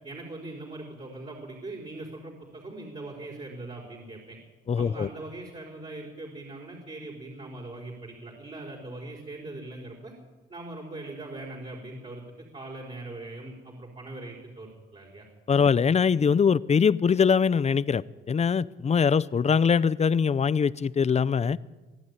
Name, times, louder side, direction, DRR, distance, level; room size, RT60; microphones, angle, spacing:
voice 1, 0.0-4.4 4.8-10.1 10.5-15.6, right 2 dB, 30° right, -1 dB, 4.8 m, -41 dB
voice 2, 4.7-5.1 15.5-21.6, left 6 dB, 35° left, 19 dB, 0.7 m, -22 dB
24.0 x 12.0 x 9.7 m, 1.3 s
cardioid pair, 90°, 20 cm